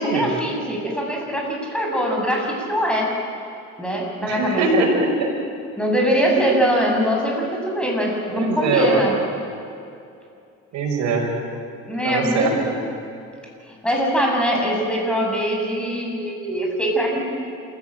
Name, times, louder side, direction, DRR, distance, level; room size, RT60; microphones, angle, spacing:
voice 1, 0.0-3.1 3.8-4.8 5.8-9.1 11.9-12.7 13.8-17.2, equal, 5° left, -1 dB, 6.6 m, -22 dB
voice 2, 4.2-5.3 6.3-6.6 8.3-9.1 10.7-11.3 12.0-12.7, right 3 dB, 70° right, 2 dB, 5.4 m, -22 dB
27.0 x 15.0 x 9.1 m, 2.5 s
cardioid pair, 105°, 30 cm